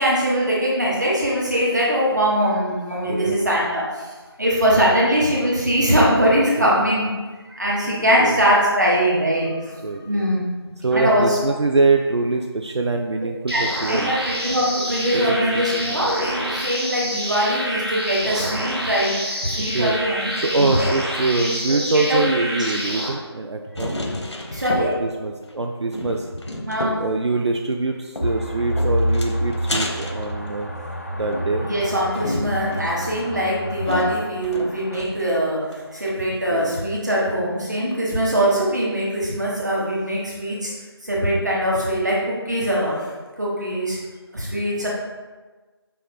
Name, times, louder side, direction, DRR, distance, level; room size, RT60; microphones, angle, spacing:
voice 1, 0.0-3.8 4.4-7.1 7.6-9.5 10.0-10.4 10.9-11.4 13.5-19.1 19.4-20.9 21.4-21.8 22.5-22.7 24.6-24.9 26.7-27.0 31.6-35.6 36.0-40.6 41.1-43.0 43.4-43.9 44.3-44.9, equal, 40° right, -5 dB, 1.1 m, -21 dB
voice 2, 9.8-10.2 10.8-14.1 15.1-15.8 19.7-20.0 20.4-24.0 24.8-26.3 27.0-30.7 31.1-31.7 36.5-36.8, right 3 dB, 80° right, 2 dB, 0.4 m, -24 dB
sound 1, 13.5-23.1, equal, 65° right, 1.1 m, -28 dB
sound 2, 23.8-25.2 25.5-25.6 25.9-27.2 28.2-30.9 31.3-35.3 35.7-35.8 36.1-36.2, left 1 dB, 85° left, 0.6 m, -31 dB
sound 3, 28.2-35.0, equal, 35° left, 0.4 m, -28 dB
5.4 x 2.1 x 3.5 m, 1.3 s
figure-of-eight pair, 170°, 14 cm